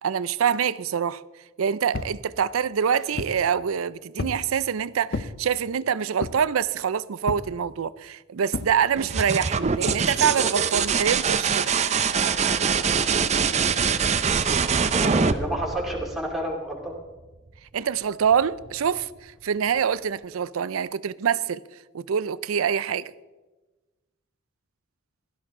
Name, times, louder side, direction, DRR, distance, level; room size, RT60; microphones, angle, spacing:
voice 1, 0.0-1.2 1.6-11.7 17.7-21.6 21.9-23.1, right 7 dB, 85° right, 0.4 m, -25 dB
sound 1, 1.9-2.2 2.8-3.4 4.2-4.5 5.1-5.4 6.2-6.5 7.3-7.5 8.5-8.8 9.9-10.1, left 3 dB, 50° left, 0.6 m, -32 dB
sound 2, 9.0-16.5 18.3-18.9, right 6 dB, 35° right, 0.5 m, -24 dB
voice 2, 14.9-17.0, right 1 dB, ahead, 2.5 m, -30 dB
16.0 x 13.0 x 3.7 m
head